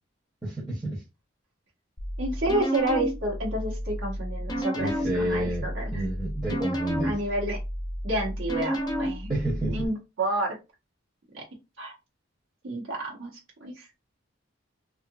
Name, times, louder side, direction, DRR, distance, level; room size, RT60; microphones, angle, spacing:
voice 1, 0.4-1.0 4.7-7.2 9.3-9.8, right 1 dB, 20° right, 0.7 m, -30 dB
sound 1, 2.0-9.9, equal, 20° left, 0.5 m, -31 dB
voice 2, 2.2-6.0 7.0-7.6 8.0-9.3 9.7-10.6 11.3-11.4 11.8-11.9 12.6-13.9, right 1 dB, 80° right, 1.0 m, -30 dB
2.7 x 2.5 x 2.3 m
head